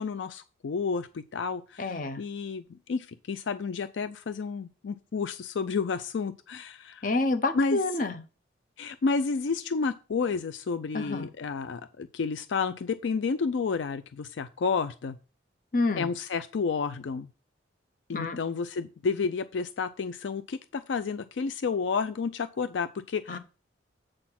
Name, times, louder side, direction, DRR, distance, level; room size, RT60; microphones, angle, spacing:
voice 1, 0.0-2.6 2.9-7.1 7.5-7.8 8.8-15.2 16.0-17.3 18.1-23.4, left 5 dB, 75° left, 0.4 m, -31 dB
voice 2, 1.8-2.2 7.0-8.2 10.9-11.3 15.7-16.1 18.1-18.4 23.3-23.4, left 3 dB, 45° left, 0.8 m, -28 dB
7.7 x 4.2 x 5.8 m
head